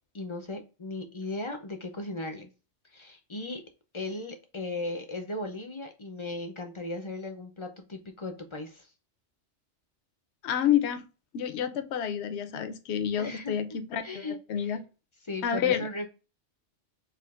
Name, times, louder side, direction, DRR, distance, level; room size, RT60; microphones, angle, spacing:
voice 1, 0.1-2.5 2.9-3.6 3.9-8.9 13.1-13.6 14.0-14.8 15.2-16.1, left 2 dB, 35° left, 0.5 m, -37 dB
voice 2, 10.4-11.0 11.3-14.8 15.4-15.9, left 9 dB, 75° left, 0.9 m, -29 dB
4.9 x 2.5 x 2.3 m
omnidirectional pair, 1.2 m